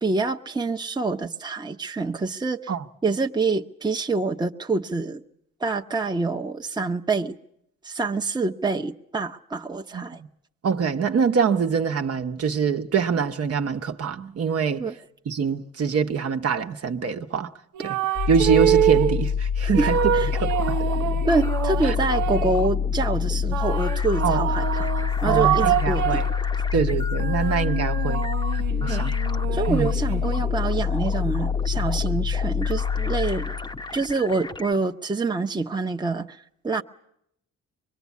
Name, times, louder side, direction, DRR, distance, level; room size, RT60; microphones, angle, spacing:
voice 1, 0.0-2.7 3.0-5.2 5.6-7.3 7.8-10.2 14.8-15.0 19.6-20.3 21.3-24.9 25.2-26.2 28.9-29.1 29.5-33.6 33.9-36.8, right 3 dB, 15° right, 1.0 m, -26 dB
voice 2, 9.9-10.3 10.6-14.8 15.3-17.5 17.8-18.0 18.3-19.9 20.3-20.8 21.8-21.9 24.2-24.4 25.2-26.2 26.7-28.2 28.8-29.1 29.7-29.9, right 6 dB, 50° right, 1.1 m, -24 dB
sound 1, 17.7-19.2 19.7-22.7 23.5-26.4 26.9-30.5, right 12 dB, 85° right, 0.9 m, -26 dB
sound 2, 18.1-33.9, left 7 dB, 50° left, 1.2 m, -26 dB
sound 3, 19.9-34.7, left 2 dB, 15° left, 0.9 m, -37 dB
24.5 x 21.5 x 8.4 m
cardioid pair, 90°, 30 cm